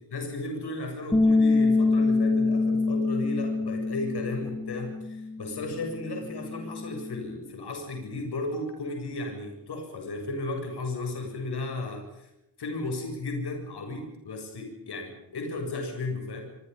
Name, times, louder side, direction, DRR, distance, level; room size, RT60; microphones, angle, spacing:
voice 1, 0.1-12.3 12.6-16.4, left 2 dB, 70° left, 3 dB, 7.6 m, -34 dB
Bass guitar, 1.1-7.4, left 3 dB, 10° left, 3.3 m, -26 dB
29.5 x 25.0 x 5.5 m, 0.88 s
wide cardioid pair, 160°, 41 cm